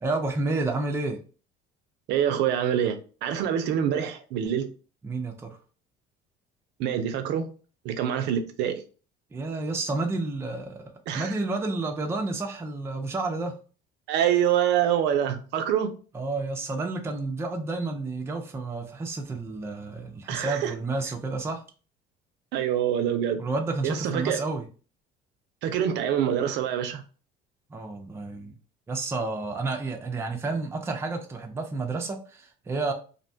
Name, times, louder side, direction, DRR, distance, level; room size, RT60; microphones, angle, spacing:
voice 1, 0.0-1.2 5.0-5.5 9.3-13.6 16.1-21.6 23.4-24.7 27.7-28.5 28.9-32.9, right 3 dB, 15° right, 0.4 m, -30 dB
voice 2, 2.1-4.7 6.8-7.5 7.8-8.8 11.1-11.3 14.1-15.9 20.3-20.7 22.5-23.4 23.8-24.4 25.6-27.0, right 9 dB, 70° right, 0.5 m, -25 dB
2.6 x 2.2 x 2.6 m
cardioid pair, 130°, 18 cm